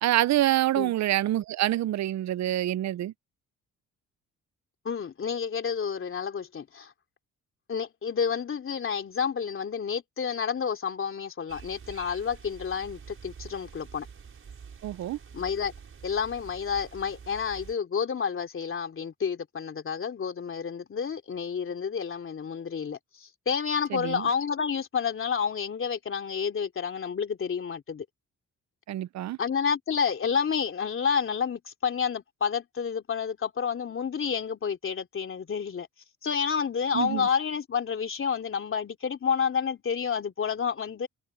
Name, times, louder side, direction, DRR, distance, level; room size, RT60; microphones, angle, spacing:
voice 1, 0.0-3.1 14.8-15.2 23.9-24.3 28.9-29.4 36.9-37.3, right 14 dB, 65° right, 0.6 m, -26 dB
voice 2, 4.8-6.9 7.7-14.1 15.3-15.7 16.0-28.0 29.4-35.9 36.2-41.1, left 6 dB, 45° left, 3.3 m, -30 dB
sound 1, 11.5-17.7, right 6 dB, 45° right, 6.2 m, -47 dB
cardioid pair, 90°, 30 cm